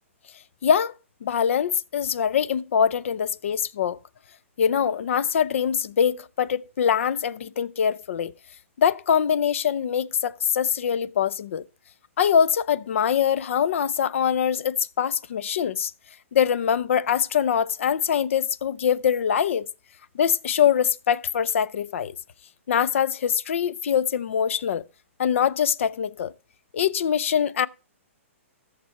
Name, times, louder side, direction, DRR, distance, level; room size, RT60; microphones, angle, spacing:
voice 1, 0.6-0.9 1.2-4.0 4.6-8.3 8.8-11.6 12.2-15.9 16.3-19.7 20.1-22.2 22.7-24.8 25.2-26.3 26.7-27.7, left 8 dB, 70° left, 0.5 m, -23 dB
11.5 x 6.7 x 4.5 m
hypercardioid pair, 145°, 7 cm